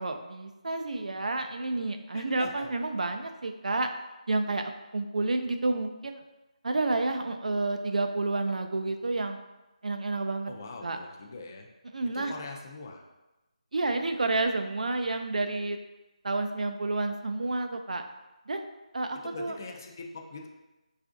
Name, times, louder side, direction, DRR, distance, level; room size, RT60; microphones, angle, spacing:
voice 1, 0.0-3.9 4.3-4.6 4.9-6.2 6.6-9.4 9.8-10.5 10.8-11.0 11.9-12.3 13.7-15.8 16.2-18.0 18.5-18.6 18.9-19.5, right 2 dB, 70° right, 5 dB, 0.3 m, -30 dB
voice 2, 2.1-2.7 10.5-11.7 12.1-13.0 19.2-20.5, left 3 dB, 25° left, 1 dB, 0.3 m, -42 dB
4.6 x 2.4 x 2.5 m, 1.0 s
figure-of-eight pair, 175°, 4 cm